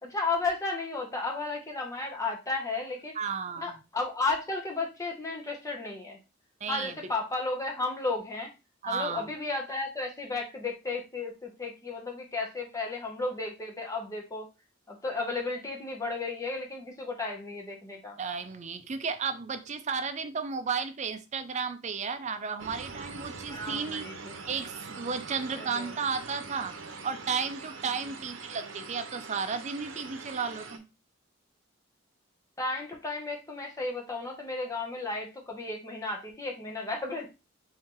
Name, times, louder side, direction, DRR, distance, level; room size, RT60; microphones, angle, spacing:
voice 1, 0.0-3.1 3.6-6.2 6.7-8.5 8.9-14.5 14.9-18.2 23.5-24.4 25.6-25.9 32.6-37.3, left 3 dB, 15° left, 0.8 m, -33 dB
voice 2, 3.1-3.8 6.6-7.0 8.8-9.3 18.2-24.0 24.5-26.7 27.0-30.8, right 5 dB, 35° right, 0.5 m, -33 dB
sound 1, 22.6-30.8, right 4 dB, 70° right, 0.8 m, -43 dB
4.5 x 2.7 x 3.7 m
head